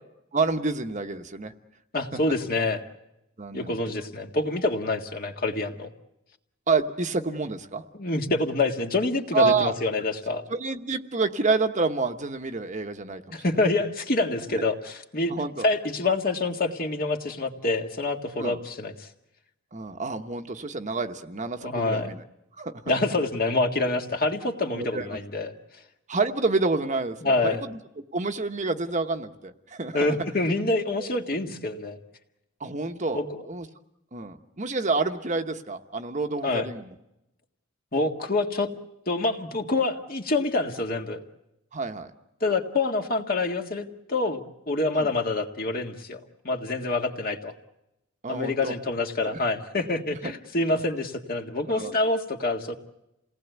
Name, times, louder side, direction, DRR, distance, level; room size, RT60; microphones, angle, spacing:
voice 1, 0.3-1.5 3.4-3.8 6.7-7.8 9.3-9.7 10.5-13.4 14.5-14.6 15.3-15.6 18.4-18.6 19.7-22.2 22.6-22.7 24.7-25.2 26.1-27.8 28.1-30.2 31.0-31.1 32.6-33.7 34.1-36.9 41.7-42.1 45.0-45.1 48.2-48.7 49.2-49.4 50.7-50.8 51.7-52.0, right 3 dB, 35° right, 7 dB, 1.1 m, -28 dB
voice 2, 1.9-2.8 3.5-5.9 7.9-10.4 13.3-15.3 15.6-19.1 21.6-22.1 22.9-25.5 27.2-27.6 29.9-32.0 33.1-33.3 36.4-36.7 37.9-38.7 39.1-41.2 42.4-46.2 46.4-47.5 48.3-52.8, left 2 dB, 45° left, 4 dB, 1.9 m, -26 dB
28.5 x 18.5 x 8.1 m, 0.90 s
head